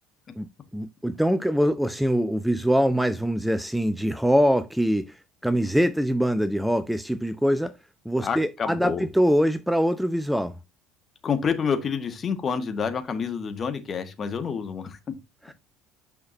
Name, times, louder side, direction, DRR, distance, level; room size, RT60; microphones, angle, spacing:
voice 1, 0.7-7.8 8.0-10.6 15.4-15.5, equal, ahead, 0.6 m, -23 dB
voice 2, 8.2-9.0 11.2-15.0, left 6 dB, 35° left, 1.7 m, -28 dB
9.3 x 5.7 x 2.7 m
figure-of-eight pair, 60°, 0 cm